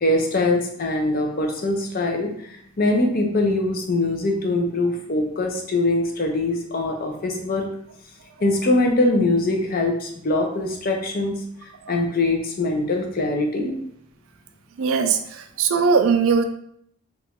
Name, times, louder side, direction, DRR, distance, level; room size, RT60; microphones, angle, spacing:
voice 1, 0.0-7.6 8.4-11.4 11.9-13.7, left 2 dB, 45° left, 2 dB, 0.5 m, -22 dB
voice 2, 14.8-15.2 15.6-16.4, right 5 dB, 70° right, 6 dB, 0.4 m, -18 dB
2.9 x 2.5 x 3.5 m, 0.68 s
head